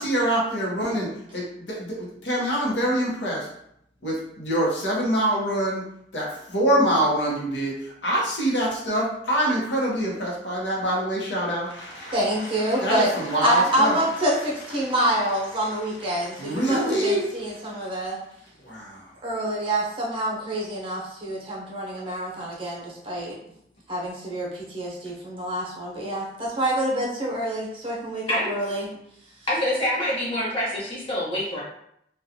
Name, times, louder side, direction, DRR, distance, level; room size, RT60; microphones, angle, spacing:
voice 1, 0.0-3.5 4.0-5.8 6.1-12.2 12.8-14.0 14.8-14.9 16.3-17.3 18.6-19.0, right 1 dB, 85° left, -3 dB, 0.8 m, -25 dB
voice 2, 12.1-13.1 13.4-18.2 19.2-23.3 23.9-28.9, right 1 dB, 30° right, -4 dB, 0.7 m, -26 dB
voice 3, 29.5-31.6, left 1 dB, 30° left, -6 dB, 1.0 m, -26 dB
2.4 x 2.3 x 2.7 m, 0.73 s
head